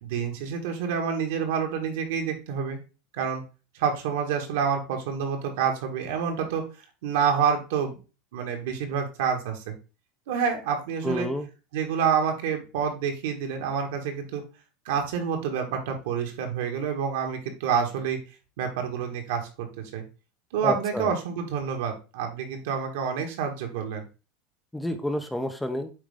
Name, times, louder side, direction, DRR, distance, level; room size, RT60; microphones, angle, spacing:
voice 1, 0.0-2.8 3.1-3.4 3.7-6.7 7.0-8.0 8.3-9.7 10.3-11.3 11.7-14.4 14.9-18.2 18.6-20.0 20.5-24.0, right 7 dB, 75° right, 3 dB, 1.9 m, -28 dB
voice 2, 11.0-11.5 20.6-21.1 24.7-25.9, left 1 dB, 5° left, 7 dB, 0.7 m, -29 dB
8.5 x 3.1 x 3.7 m, 0.32 s
supercardioid pair, 125°, 0 cm